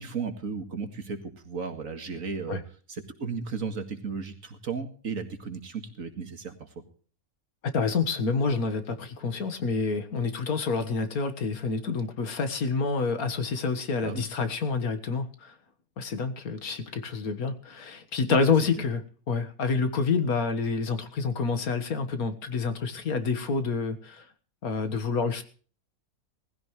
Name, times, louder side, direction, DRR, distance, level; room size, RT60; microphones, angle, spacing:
voice 1, 0.0-2.6 2.9-6.7 14.0-14.3 18.3-18.4, right 5 dB, 65° right, 6 dB, 2.4 m, -35 dB
voice 2, 7.7-15.5 16.0-24.2 24.6-25.4, left 4 dB, 75° left, 9 dB, 2.0 m, -28 dB
19.5 x 15.0 x 3.2 m, 0.42 s
omnidirectional pair, 1.5 m